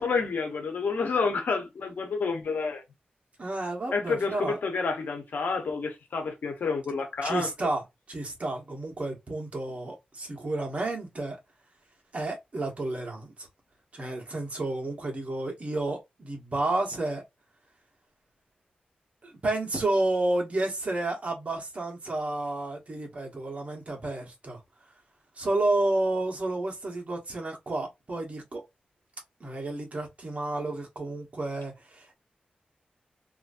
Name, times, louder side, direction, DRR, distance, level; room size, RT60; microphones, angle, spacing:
voice 1, 0.0-2.8 3.9-7.5, left 4 dB, 85° left, 0.9 m, -29 dB
voice 2, 3.4-4.6 7.2-11.4 12.1-13.5 13.9-17.2 19.2-24.6 25.4-28.6 29.4-32.2, right 2 dB, 45° right, 1.3 m, -31 dB
3.0 x 2.6 x 2.5 m
wide cardioid pair, 85°, 3 cm